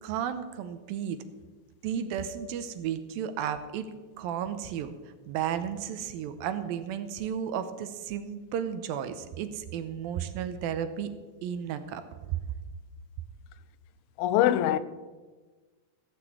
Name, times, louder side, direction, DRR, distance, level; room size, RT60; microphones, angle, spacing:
voice 1, 0.0-1.2 1.8-3.9 4.2-4.9 5.3-11.1 11.4-12.0, right 9 dB, 80° right, 2.5 m, -33 dB
voice 2, 14.2-14.8, left 12 dB, 85° left, 2.5 m, -23 dB
16.0 x 6.0 x 8.2 m
omnidirectional pair, 4.3 m